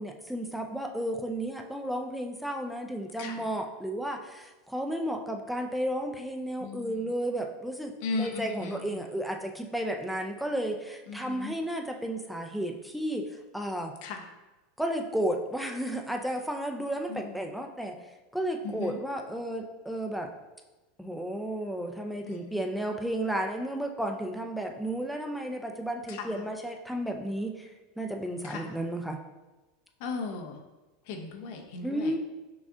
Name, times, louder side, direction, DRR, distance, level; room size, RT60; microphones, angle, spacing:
voice 1, 0.0-13.9 14.8-17.9 18.3-20.3 21.0-27.7 28.0-29.2 31.8-32.2, right 1 dB, ahead, 3 dB, 0.6 m, -33 dB
voice 2, 8.0-8.8 11.1-11.5 14.0-14.2 17.1-17.2 18.6-19.0 22.3-22.5 26.1-26.2 28.5-28.7 30.0-30.6 31.1-32.1, left 4 dB, 65° left, 4 dB, 0.7 m, -36 dB
6.0 x 2.4 x 3.7 m, 1.1 s
hypercardioid pair, 90°, 0 cm